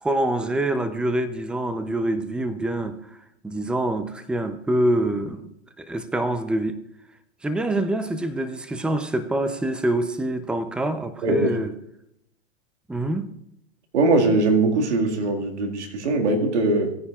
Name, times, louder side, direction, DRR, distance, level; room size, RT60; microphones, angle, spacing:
voice 1, 0.0-3.0 3.4-5.5 5.8-6.8 7.4-11.7 12.9-13.3, right 1 dB, 5° right, 0.6 m, -25 dB
voice 2, 13.9-16.9, right 2 dB, 75° right, 2.1 m, -21 dB
17.0 x 9.9 x 2.4 m
hypercardioid pair, 110°, 34 cm